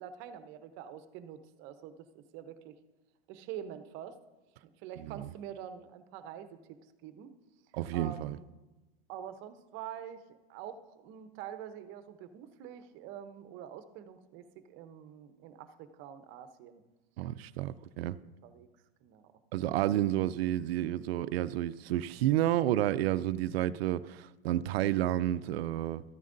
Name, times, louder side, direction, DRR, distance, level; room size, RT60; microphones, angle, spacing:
voice 1, 0.0-2.8 3.3-4.2 4.8-7.3 7.9-8.4 9.1-10.2 10.5-16.8 18.4-18.7 19.0-19.2, right 9 dB, 40° right, 0.8 m, -46 dB
voice 2, 5.0-5.3 7.7-8.4 17.2-18.2 19.5-26.0, right 13 dB, 75° right, 0.5 m, -30 dB
13.5 x 9.3 x 2.6 m
supercardioid pair, 135°, 31 cm